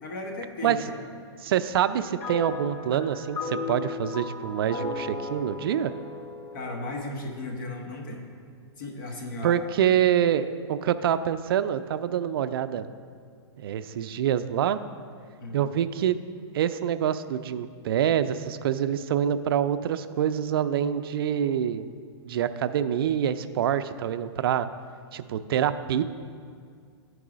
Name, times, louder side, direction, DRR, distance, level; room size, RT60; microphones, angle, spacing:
voice 1, 0.0-1.0 6.5-8.2 8.8-9.6 15.4-15.7 21.3-21.4, left 2 dB, 50° left, 1 dB, 1.2 m, -36 dB
voice 2, 1.4-5.9 9.4-12.9 13.6-14.8 15.5-16.2 16.5-21.9 22.2-24.7 25.1-26.0, right 9 dB, 55° right, 12 dB, 0.4 m, -26 dB
sound 1, 2.2-7.7, left 4 dB, 15° left, 0.4 m, -36 dB
10.5 x 4.7 x 5.0 m, 2.1 s
hypercardioid pair, 160°, 14 cm